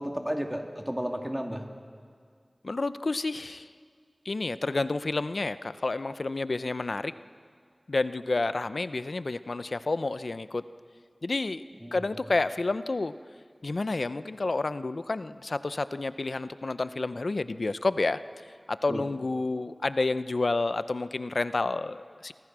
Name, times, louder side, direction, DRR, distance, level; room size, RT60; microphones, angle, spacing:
voice 1, 0.0-1.7 11.8-12.0 18.9-19.1, equal, 10° right, 3 dB, 2.6 m, -32 dB
voice 2, 2.6-3.7 4.2-7.1 7.9-10.6 11.2-11.6 11.9-13.1 13.6-18.2 18.7-22.3, left 3 dB, 85° left, 13 dB, 0.6 m, -29 dB
29.5 x 24.0 x 6.2 m, 2.1 s
wide cardioid pair, 40°, 0 cm